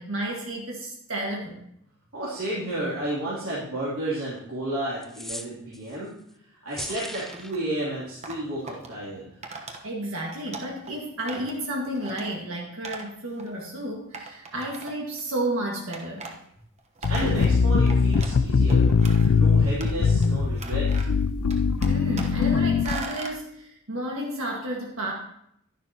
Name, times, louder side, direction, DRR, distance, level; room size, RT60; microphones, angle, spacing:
voice 1, 0.0-1.6 9.8-16.3 21.9-25.1, right 1 dB, 70° right, -2 dB, 1.8 m, -32 dB
voice 2, 2.1-6.1 6.6-9.3 17.1-18.9 19.3-20.9, right 1 dB, 90° right, -9 dB, 3.0 m, -32 dB
sound 1, 5.0-6.0 6.7-7.5, left 1 dB, ahead, 0.3 m, -38 dB
sound 2, 6.9-7.6 8.2-8.9 9.4-9.8 10.1-10.9 11.3-11.6 12.0-12.3 12.8-13.1 13.4-13.5 14.1-15.2 15.9-16.3 16.8-18.4 18.7-19.4 19.8-20.3 20.5-21.2 21.5-22.5 22.8-23.4, right 3 dB, 30° right, 1.1 m, -39 dB
sound 3, 17.0-23.0, left 5 dB, 75° left, 0.5 m, -21 dB
11.5 x 11.0 x 3.0 m, 0.74 s
head